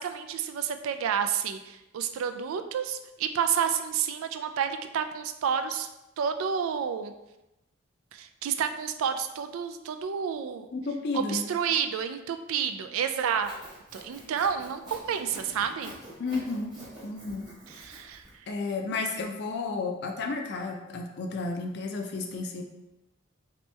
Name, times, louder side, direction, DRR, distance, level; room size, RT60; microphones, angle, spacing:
voice 1, 0.0-5.9 6.2-7.1 8.1-10.7 11.1-13.5 13.9-15.9 17.7-18.2, right 7 dB, 80° right, 8 dB, 0.3 m, -30 dB
voice 2, 10.7-11.5 16.2-16.7 17.0-17.4 18.5-22.6, left 3 dB, 55° left, 3 dB, 0.5 m, -32 dB
Sawing, 13.3-18.3, right 1 dB, 20° right, 1.1 m, -47 dB
3.1 x 2.9 x 3.3 m, 0.95 s
head